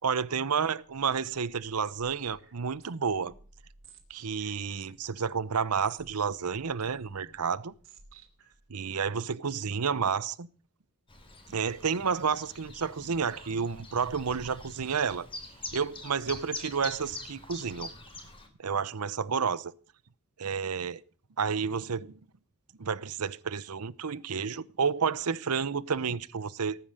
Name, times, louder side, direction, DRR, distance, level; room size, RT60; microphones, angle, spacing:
voice 1, 0.0-3.3 4.1-7.7 8.7-10.5 11.5-15.3 15.7-17.9 18.6-19.7 20.4-21.0 21.4-22.1 22.8-26.8, right 6 dB, 90° right, 0.8 m, -30 dB
sound 1, 0.8-8.7, right 4 dB, 60° right, 3.1 m, -57 dB
Chirp tweet, 11.1-18.5, left 3 dB, 25° left, 3.1 m, -44 dB
19.0 x 9.1 x 6.6 m
head